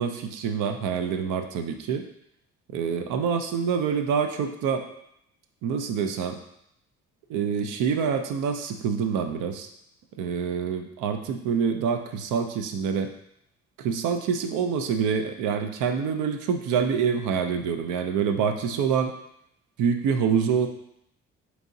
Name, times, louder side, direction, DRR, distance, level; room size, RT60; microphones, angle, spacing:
voice 1, 0.0-2.0 2.7-4.9 5.6-6.4 7.3-9.7 10.2-13.1 13.8-19.1 19.8-20.7, right 6 dB, 85° right, 6 dB, 0.5 m, -26 dB
4.6 x 2.9 x 2.6 m, 0.77 s
cardioid pair, 90°, 30 cm